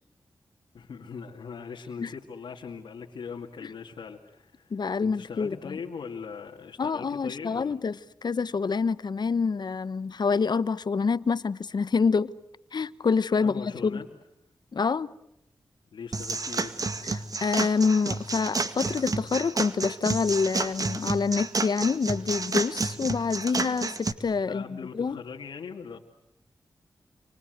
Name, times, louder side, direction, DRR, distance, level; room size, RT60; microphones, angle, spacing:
voice 1, 0.7-7.8 13.4-14.0 15.9-16.8 24.5-26.0, left 6 dB, 85° left, 2.3 m, -40 dB
voice 2, 4.7-5.8 6.8-12.3 12.7-14.0 14.7-15.1 17.0-25.2, left 5 dB, 65° left, 1.0 m, -27 dB
sound 1, 16.1-24.1, right 3 dB, 50° right, 2.0 m, -30 dB
28.5 x 25.0 x 8.1 m
cardioid pair, 45°, 8 cm